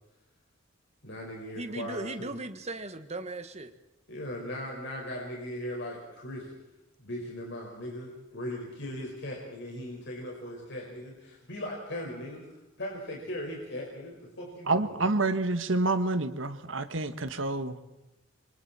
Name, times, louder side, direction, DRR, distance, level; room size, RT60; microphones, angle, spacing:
voice 1, 1.0-2.3 4.1-6.5 7.0-12.4 12.8-15.1, left 1 dB, 60° left, -1 dB, 5.2 m, -38 dB
voice 2, 1.5-3.7, right 2 dB, 35° right, 9 dB, 1.6 m, -37 dB
voice 3, 14.7-17.8, right 2 dB, 70° right, 9 dB, 1.7 m, -28 dB
26.5 x 24.5 x 4.4 m, 0.96 s
head